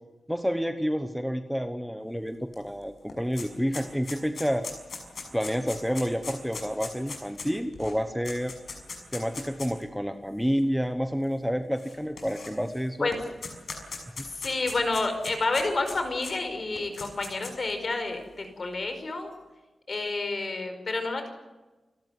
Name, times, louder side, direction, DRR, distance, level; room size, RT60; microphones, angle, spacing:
voice 1, 0.3-4.7 5.3-8.5 9.1-13.1 14.2-14.3, equal, ahead, 7 dB, 1.1 m, -29 dB
sound 1, 2.5-2.6 2.9-9.8 10.6-10.7 11.8-12.8 13.1-16.3 16.8-17.7, left 4 dB, 65° left, 6.3 m, -39 dB
voice 2, 14.3-19.3 19.9-21.3, left 3 dB, 40° left, 7 dB, 5.0 m, -29 dB
29.0 x 13.5 x 9.5 m, 1.2 s
wide cardioid pair, 160°, 0 cm